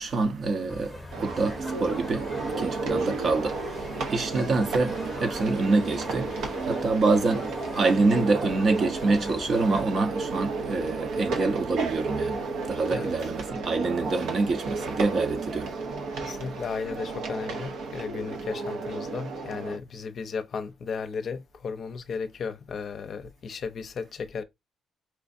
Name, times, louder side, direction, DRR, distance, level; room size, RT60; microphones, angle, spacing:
voice 1, 0.0-16.4, right 3 dB, 50° right, 0.8 m, -26 dB
sound 1, 0.7-9.9, left 2 dB, 20° left, 0.8 m, -42 dB
sound 2, 1.1-19.8, right 3 dB, 85° right, 0.8 m, -33 dB
voice 2, 16.2-24.4, left 5 dB, 55° left, 0.6 m, -35 dB
4.5 x 2.5 x 2.6 m
cardioid pair, 90°, 0 cm